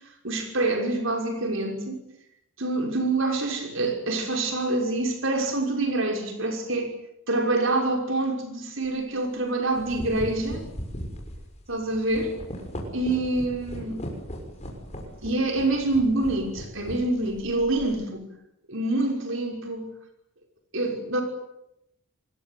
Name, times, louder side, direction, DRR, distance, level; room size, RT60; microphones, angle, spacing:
voice 1, 0.2-2.0 2.6-6.9 7.3-10.6 11.7-12.4 12.9-14.0 15.2-18.2 18.7-19.9 20.7-21.2, right 2 dB, 60° right, 6.0 m, -26 dB
sound 1, 8.8-9.0 9.6-18.0, equal, 30° left, 6.4 m, -38 dB
27.0 x 20.5 x 9.6 m
head